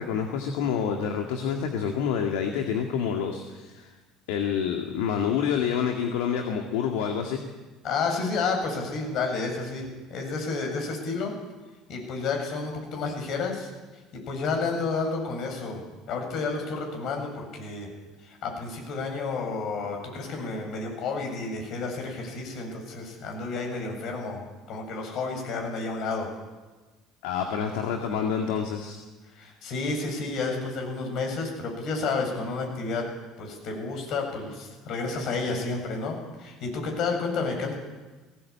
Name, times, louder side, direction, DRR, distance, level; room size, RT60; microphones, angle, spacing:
voice 1, 0.0-3.9 4.3-7.4 27.2-29.0, left 7 dB, 75° left, 3 dB, 2.0 m, -28 dB
voice 2, 7.8-11.3 11.9-13.7 14.3-15.8 16.1-17.9 18.3-24.4 24.7-26.3 29.3-33.1 33.4-37.7, left 4 dB, 60° left, 2 dB, 7.5 m, -30 dB
18.5 x 17.5 x 8.5 m, 1.3 s
hypercardioid pair, 75°, 0 cm